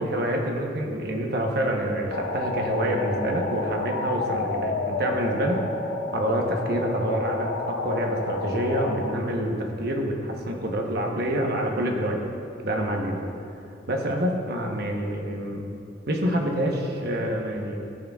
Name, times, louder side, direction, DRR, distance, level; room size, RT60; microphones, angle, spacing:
voice 1, 0.0-5.6 6.1-12.2 12.6-13.3 13.9-15.7 16.1-17.8, right 1 dB, 60° right, 1 dB, 1.0 m, -27 dB
sound 1, 2.1-9.1, left 3 dB, 75° left, 0.5 m, -30 dB
15.0 x 6.5 x 2.4 m, 2.6 s
head